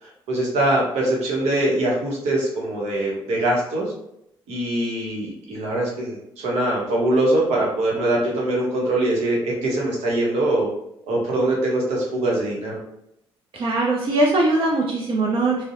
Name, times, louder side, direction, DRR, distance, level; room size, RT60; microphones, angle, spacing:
voice 1, 0.0-3.9 4.5-10.7 11.1-12.8, right 1 dB, 75° right, -3 dB, 0.8 m, -23 dB
voice 2, 13.5-15.6, right 2 dB, 50° right, -1 dB, 0.5 m, -21 dB
2.6 x 2.0 x 2.5 m, 0.79 s
supercardioid pair, 55°, 11 cm